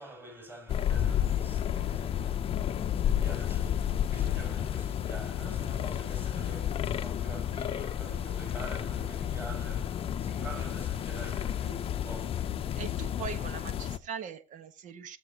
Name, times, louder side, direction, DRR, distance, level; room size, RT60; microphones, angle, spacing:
voice 1, 0.0-12.8, right 2 dB, 10° right, 7.1 m, -47 dB
sound 1, 0.7-14.0, left 10 dB, 35° left, 0.8 m, -31 dB
voice 2, 12.7-15.2, right 7 dB, 45° right, 1.5 m, -41 dB
19.5 x 7.7 x 3.0 m
supercardioid pair, 115°, 17 cm